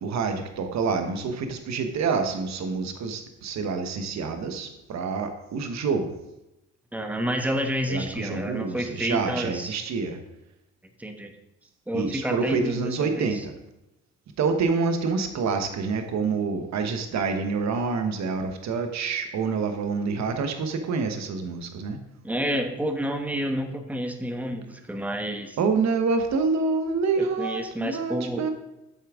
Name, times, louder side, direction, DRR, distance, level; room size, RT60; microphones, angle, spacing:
voice 1, 0.0-6.1 7.9-10.2 11.9-13.5 14.4-22.0 25.6-28.5, right 4 dB, 65° right, 7 dB, 1.0 m, -27 dB
voice 2, 6.9-9.7 11.0-11.3 11.9-13.4 22.2-25.6 27.2-28.4, equal, 5° right, 5 dB, 1.0 m, -29 dB
8.6 x 6.9 x 3.6 m, 0.92 s
cardioid pair, 90°, 30 cm